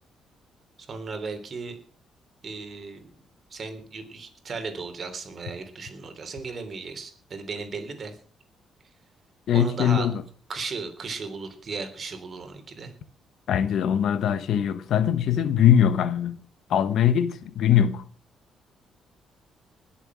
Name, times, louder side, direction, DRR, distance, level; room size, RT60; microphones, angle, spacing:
voice 1, 0.8-1.8 2.4-3.0 3.5-8.2 9.5-10.1 10.5-12.9, right 4 dB, 45° right, 3.3 m, -36 dB
voice 2, 9.5-10.2 13.5-16.4 16.7-18.0, left 9 dB, 70° left, 1.1 m, -21 dB
20.0 x 7.4 x 6.2 m
cardioid pair, 90°, 0 cm